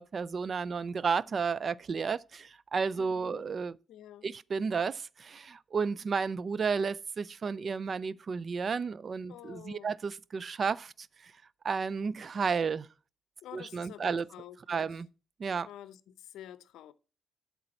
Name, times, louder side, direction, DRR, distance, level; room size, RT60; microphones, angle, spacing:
voice 1, 0.0-3.8 4.2-11.3 11.6-12.9 13.5-14.3 14.7-15.1 15.4-15.7, right 5 dB, 50° right, 0.4 m, -32 dB
voice 2, 3.0-3.5 3.9-4.3 9.3-10.0 13.4-14.9 15.7-16.9, left 12 dB, 80° left, 0.6 m, -49 dB
8.6 x 6.9 x 4.3 m
supercardioid pair, 55°, 0 cm